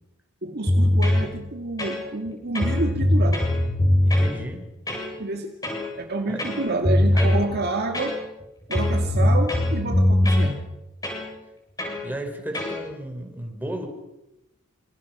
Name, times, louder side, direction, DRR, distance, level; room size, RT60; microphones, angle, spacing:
voice 1, 0.4-3.4 5.2-5.6 6.0-8.2 8.7-10.6, right 2 dB, 45° right, 4 dB, 2.2 m, -28 dB
sound 1, 0.7-1.3 1.8-2.3 2.5-4.3 4.9-5.1 5.6-5.9 6.4-7.4 7.9-8.4 8.7-10.5 11.0-11.3 11.8-12.0 12.5-12.8, left 1 dB, 15° left, 8.0 m, -21 dB
voice 2, 4.0-4.6 6.3-6.4 7.1-7.3 12.0-13.9, right 1 dB, 10° right, 3 dB, 5.7 m, -34 dB
28.0 x 27.5 x 6.2 m, 0.92 s
head